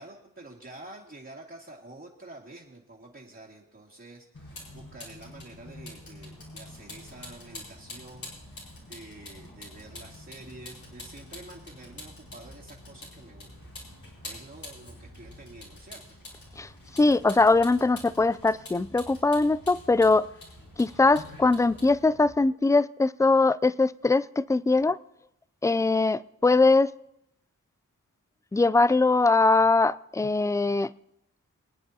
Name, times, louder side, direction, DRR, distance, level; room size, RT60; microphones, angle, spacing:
voice 1, 0.0-13.5 14.2-16.0, right 2 dB, 35° right, -5 dB, 2.2 m, -48 dB
Vehicle, 4.3-22.3, left 1 dB, 90° left, 5.0 m, -46 dB
voice 2, 17.0-20.3 20.8-25.0 25.6-26.9 28.5-30.9, left 3 dB, 10° left, 18 dB, 0.3 m, -22 dB
25.0 x 9.2 x 2.9 m, 0.80 s
cardioid pair, 45°, 34 cm